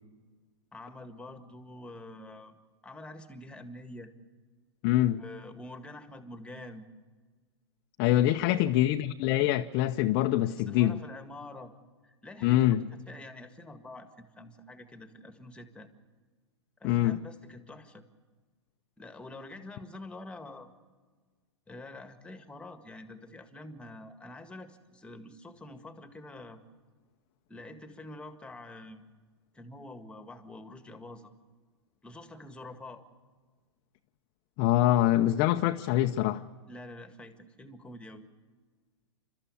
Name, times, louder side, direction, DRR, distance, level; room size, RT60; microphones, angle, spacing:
voice 1, 0.7-2.5 2.8-4.1 5.0-6.9 8.4-8.6 10.5-11.7 12.0-15.9 16.8-18.0 19.0-20.7 21.7-26.6 27.5-29.0 29.5-31.3 32.0-33.0 36.7-38.3, left 2 dB, 5° left, 1.8 m, -46 dB
voice 2, 4.8-5.2 8.0-11.0 12.4-12.8 16.8-17.2 34.6-36.4, left 14 dB, 40° left, 0.8 m, -24 dB
28.5 x 13.0 x 8.6 m
hypercardioid pair, 115°, 15 cm